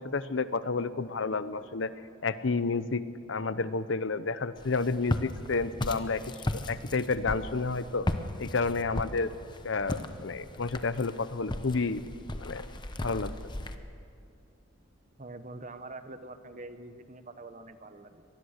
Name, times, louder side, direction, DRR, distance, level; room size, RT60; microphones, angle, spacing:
voice 1, 0.0-1.9 2.2-3.0 3.3-6.2 6.7-8.1 8.4-9.3 9.6-12.0 12.4-12.6 13.0-13.3, left 4 dB, 65° left, 14 dB, 0.7 m, -30 dB
Walk footsteps, 4.6-13.8, left 1 dB, 20° left, 0.9 m, -36 dB
voice 2, 15.2-18.2, right 2 dB, 35° right, 10 dB, 1.0 m, -45 dB
24.5 x 19.5 x 6.6 m, 2.4 s
head